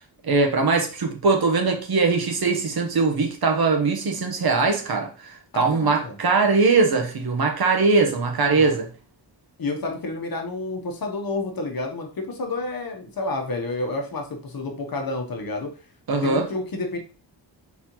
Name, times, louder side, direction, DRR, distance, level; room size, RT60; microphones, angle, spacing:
voice 1, 0.2-8.9 16.1-16.5, right 4 dB, 55° right, 1.0 m, -21 dB
voice 2, 5.5-6.2 8.5-8.8 9.6-15.7 16.2-17.0, left 2 dB, 50° left, 1.0 m, -30 dB
4.2 x 4.1 x 2.9 m
wide cardioid pair, 160°, 44 cm